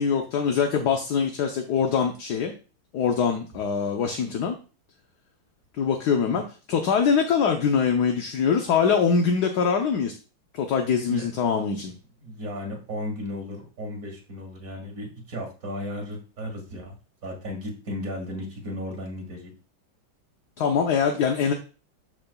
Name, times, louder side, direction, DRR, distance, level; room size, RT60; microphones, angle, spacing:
voice 1, 0.0-2.5 2.9-4.6 5.8-6.4 6.7-10.1 10.5-11.9 20.6-21.5, left 6 dB, 65° left, 4 dB, 1.3 m, -23 dB
voice 2, 11.1-11.4 11.8-11.9 12.2-16.9 17.2-19.5, left 1 dB, 45° right, 0 dB, 2.3 m, -35 dB
12.5 x 4.9 x 2.3 m, 0.34 s
omnidirectional pair, 2.1 m